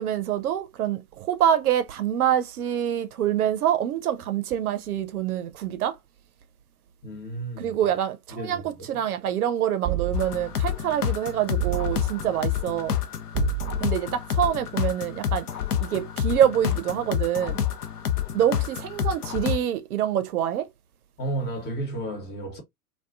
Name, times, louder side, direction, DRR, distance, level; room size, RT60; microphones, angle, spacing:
voice 1, 0.0-6.0 7.6-13.0 13.8-15.5 15.8-17.6 18.3-20.7, right 10 dB, 65° right, 0.6 m, -26 dB
voice 2, 7.0-7.9 8.3-8.9 21.2-22.6, right 2 dB, 20° left, 0.8 m, -33 dB
sound 1, 9.8-10.6 11.6-12.3 13.3-14.1, right 16 dB, 25° right, 0.5 m, -30 dB
sound 2, 10.1-19.6, left 10 dB, 70° left, 0.6 m, -28 dB
2.5 x 2.3 x 2.2 m
figure-of-eight pair, 95°, 47 cm